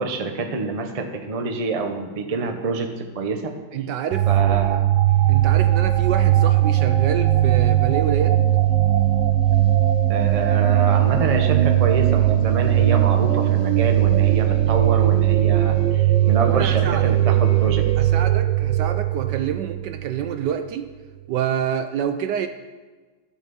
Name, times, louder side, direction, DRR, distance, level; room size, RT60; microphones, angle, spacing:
voice 1, 0.0-3.5 4.3-4.9 10.1-18.1, right 3 dB, 50° right, 5 dB, 0.4 m, -26 dB
voice 2, 3.7-4.8 5.3-8.4 16.4-17.1 18.0-20.9 21.3-22.5, right 9 dB, 70° right, 9 dB, 1.0 m, -27 dB
sound 1, 4.1-20.5, right 14 dB, 90° right, 1.4 m, -19 dB
sound 2, 5.1-18.2, left 6 dB, 75° left, 0.7 m, -36 dB
13.0 x 6.0 x 6.9 m, 1.3 s
omnidirectional pair, 2.2 m